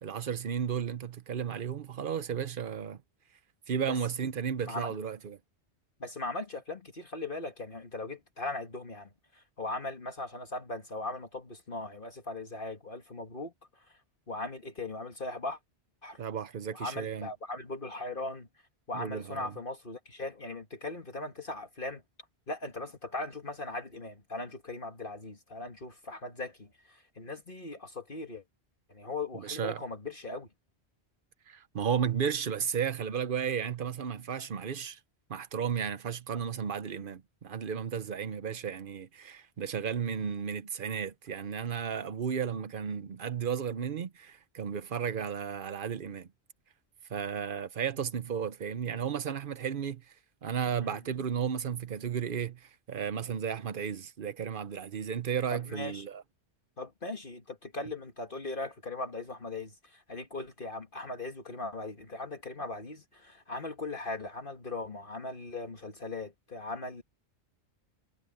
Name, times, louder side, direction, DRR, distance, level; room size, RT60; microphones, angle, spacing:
voice 1, 0.0-3.0 3.7-5.4 16.2-17.3 18.9-19.5 29.3-29.8 31.5-35.0 35.3-46.3 47.1-50.0 50.4-56.2, right 7 dB, 55° right, 1.0 m, -34 dB
voice 2, 4.6-4.9 6.0-13.5 14.3-15.6 16.0-16.2 16.7-18.5 18.9-22.0 22.5-28.4 28.9-30.5 50.8-51.0 55.5-56.0 56.8-67.0, left 2 dB, 50° left, 2.1 m, -39 dB
omnidirectional pair, 1.1 m